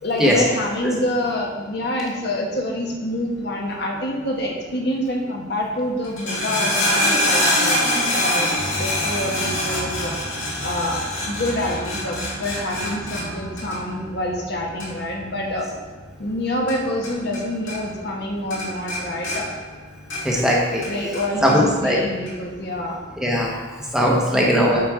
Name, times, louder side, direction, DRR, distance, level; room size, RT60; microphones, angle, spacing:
voice 1, 0.0-7.8 8.1-10.1 10.6-15.7 16.2-19.5 20.8-23.0 24.3-24.6, left 1 dB, 50° left, -1 dB, 1.2 m, -27 dB
sound 1, 6.0-17.4 17.7-18.2 18.5-20.5 20.8-21.6 22.3-22.4, left 1 dB, 70° left, 2.3 m, -25 dB
voice 2, 20.2-20.8 21.4-22.0 23.2-23.5 23.9-24.8, equal, 5° right, -3 dB, 1.0 m, -18 dB
8.3 x 4.1 x 4.8 m, 1.4 s
head